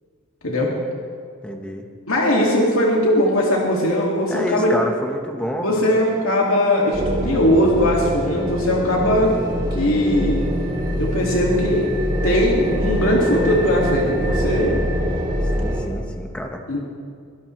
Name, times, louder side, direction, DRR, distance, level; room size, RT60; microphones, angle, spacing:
voice 1, 0.4-0.7 2.1-4.7 5.6-9.3 9.7-10.4 11.0-11.9 12.2-14.8 16.7-16.8, left 1 dB, 80° left, -3 dB, 2.3 m, -19 dB
voice 2, 1.4-1.9 4.3-5.8 15.5-16.8, equal, 5° left, 2 dB, 1.4 m, -28 dB
sound 1, 6.9-15.8, equal, 20° right, 2.7 m, -24 dB
22.5 x 18.0 x 3.3 m, 2.2 s
head